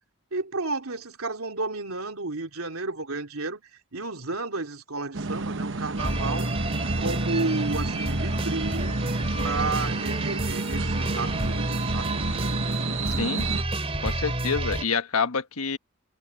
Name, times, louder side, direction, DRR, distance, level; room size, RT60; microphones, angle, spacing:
voice 1, 0.3-3.6 3.9-6.5 7.0-8.9 9.4-12.2, right 3 dB, 75° right, 3.1 m, -32 dB
Street Car, 5.1-13.6, right 3 dB, 60° right, 1.0 m, -31 dB
sound 1, 6.0-14.8, right 1 dB, 25° right, 2.5 m, -29 dB
voice 2, 13.2-13.5 14.0-15.8, left 5 dB, 85° left, 1.3 m, -27 dB
head